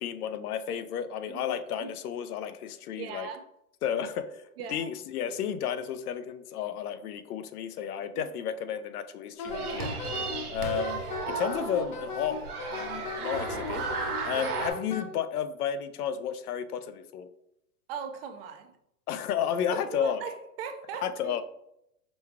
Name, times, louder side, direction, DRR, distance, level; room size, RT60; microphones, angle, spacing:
voice 1, 0.0-3.3 3.8-4.4 4.7-9.9 10.5-11.0 11.3-12.4 12.7-13.9 14.2-17.3 19.1-20.2 21.0-21.4, left 8 dB, 80° left, 11 dB, 0.6 m, -32 dB
voice 2, 3.0-3.4 4.6-4.9 8.1-8.2 14.3-14.4 17.9-18.8 19.7-21.4, right 7 dB, 40° right, 7 dB, 0.5 m, -39 dB
Wind instrument woodwind instrument, 9.4-15.1, left 5 dB, 35° left, 0.4 m, -37 dB
sound 1, 9.5-14.7, right 5 dB, 80° right, 1.2 m, -35 dB
5.1 x 2.3 x 3.5 m, 0.79 s
hypercardioid pair, 140°, 45 cm